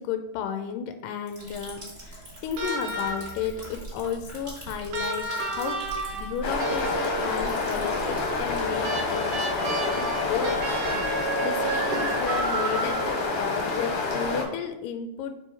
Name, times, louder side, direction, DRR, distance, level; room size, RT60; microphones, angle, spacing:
voice 1, 0.0-5.8 6.1-10.6 11.0-15.4, left 7 dB, 80° left, 6 dB, 2.0 m, -33 dB
Liquid, 1.3-13.7, right 2 dB, 25° right, 0.9 m, -43 dB
sound 1, 2.6-3.5 4.9-7.5 8.8-13.3 14.7-14.8, right 3 dB, 70° right, 2.1 m, -32 dB
sound 2, 6.4-14.4, left 3 dB, 65° left, 2.0 m, -28 dB
4.7 x 4.5 x 4.5 m, 0.85 s
omnidirectional pair, 4.1 m